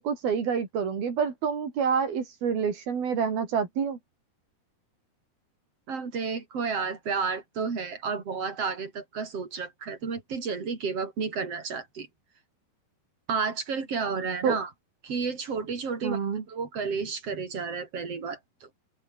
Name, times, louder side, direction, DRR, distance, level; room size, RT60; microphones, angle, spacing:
voice 1, 0.0-4.0 14.4-14.6 16.0-16.4, right 6 dB, 65° right, 5.6 m, -27 dB
voice 2, 5.9-12.1 13.3-14.7 15.0-16.2 16.5-18.7, right 5 dB, 40° right, 4.8 m, -31 dB
open air
omnidirectional pair, 4.6 m